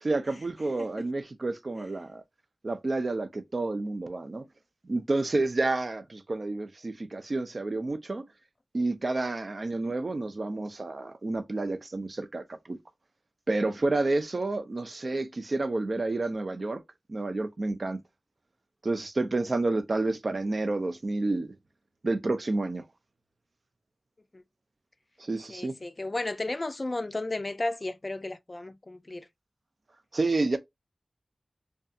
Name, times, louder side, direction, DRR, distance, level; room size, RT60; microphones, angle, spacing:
voice 1, 0.0-2.2 2.6-4.4 4.8-8.3 8.7-12.8 13.5-16.8 17.1-18.0 18.8-21.5 22.0-22.8 25.2-25.8 30.1-30.6, right 2 dB, 55° right, 0.4 m, -29 dB
voice 2, 25.5-29.3, left 2 dB, 40° left, 0.3 m, -34 dB
2.6 x 2.3 x 2.3 m
wide cardioid pair, 60°, 0 cm